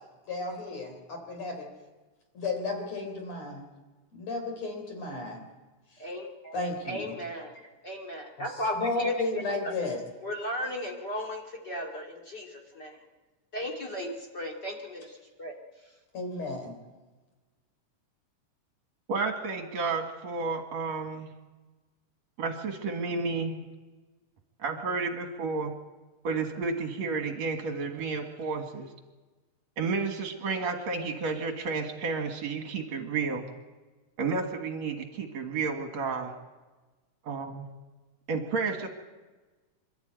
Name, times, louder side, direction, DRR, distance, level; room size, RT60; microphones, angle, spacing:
voice 1, 0.3-1.7 2.3-3.7 4.1-5.4 6.5-7.1 8.8-10.0 16.1-16.8, left 3 dB, 55° left, 4 dB, 4.7 m, -33 dB
voice 2, 6.0-6.6 6.8-9.7 10.2-12.9 13.5-15.5, left 1 dB, 35° left, 0 dB, 2.5 m, -36 dB
voice 3, 19.1-21.3 22.4-23.6 24.6-25.8 26.2-28.9 29.8-33.5 34.2-36.3 37.2-37.7 38.3-38.9, right 4 dB, 60° right, 4 dB, 2.8 m, -31 dB
27.0 x 12.5 x 9.1 m, 1.2 s
omnidirectional pair, 3.7 m